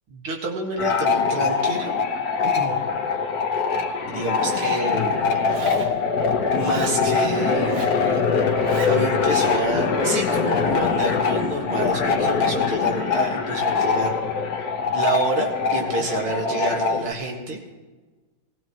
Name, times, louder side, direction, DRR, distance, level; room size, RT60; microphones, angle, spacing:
voice 1, 0.1-1.9 2.4-2.8 4.1-5.4 6.5-8.2 8.9-14.2 14.9-17.6, right 2 dB, 85° right, 1 dB, 2.7 m, -28 dB
sound 1, 0.8-17.1, left 5 dB, 55° left, 1.3 m, -23 dB
Zipper (clothing), 4.3-4.9 5.5-6.0 6.5-7.0 7.6-8.0 8.5-9.0, right 4 dB, 60° right, 1.7 m, -36 dB
20.0 x 15.5 x 3.1 m, 1.3 s
omnidirectional pair, 2.3 m